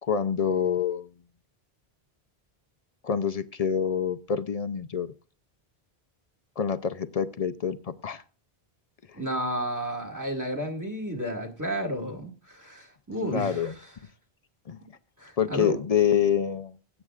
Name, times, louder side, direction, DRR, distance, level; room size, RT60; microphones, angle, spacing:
voice 1, 0.0-1.1 3.0-5.1 6.6-8.2 9.1-9.2 13.2-13.7 14.7-14.8 15.4-16.8, left 7 dB, 45° left, 11 dB, 0.6 m, -26 dB
voice 2, 9.1-13.7 15.2-15.8, equal, 15° right, 4 dB, 1.9 m, -32 dB
20.5 x 8.8 x 2.4 m, 0.36 s
omnidirectional pair, 1.0 m